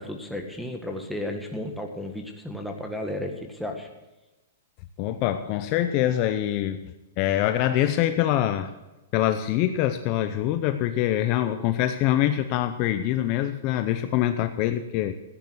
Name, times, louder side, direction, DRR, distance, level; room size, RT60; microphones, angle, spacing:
voice 1, 0.0-3.9, left 1 dB, ahead, 1 dB, 1.7 m, -33 dB
voice 2, 5.0-8.7 9.1-15.1, left 12 dB, 35° left, 9 dB, 0.7 m, -24 dB
15.0 x 9.6 x 6.3 m, 1.1 s
hypercardioid pair, 155°, 0 cm